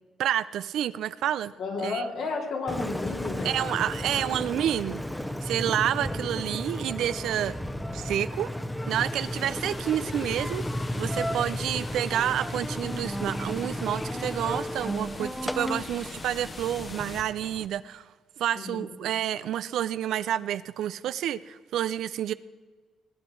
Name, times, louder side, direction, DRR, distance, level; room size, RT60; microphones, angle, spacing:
voice 1, 0.2-1.5 1.8-2.0 3.4-5.0 5.4-7.6 7.9-8.5 8.9-10.7 11.0-18.1 18.4-22.3, right 11 dB, 80° right, 14 dB, 0.4 m, -29 dB
voice 2, 1.6-3.8 4.1-4.3 18.5-18.9, left 4 dB, 75° left, 0 dB, 3.1 m, -33 dB
Engine, 2.7-17.7, equal, 5° left, 0.9 m, -34 dB
sound 1, 8.9-17.2, left 3 dB, 35° left, 1.1 m, -42 dB
20.5 x 9.8 x 4.6 m, 1.5 s
cardioid pair, 90°, 0 cm